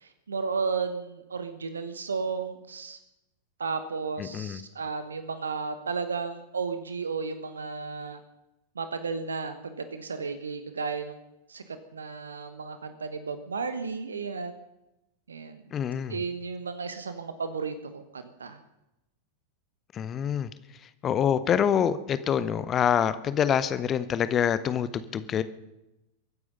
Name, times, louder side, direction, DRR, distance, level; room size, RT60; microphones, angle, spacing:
voice 1, 0.0-3.0 3.6-8.2 8.8-11.2 11.5-11.6 11.9-14.5 15.3-15.6 16.1-18.6, right 5 dB, 70° right, 10 dB, 1.1 m, -33 dB
voice 2, 4.2-4.6 15.7-16.2 19.9-20.5 20.8-25.4, left 8 dB, 25° left, 14 dB, 0.8 m, -26 dB
22.5 x 9.7 x 5.4 m, 0.91 s
figure-of-eight pair, 90°, 0 cm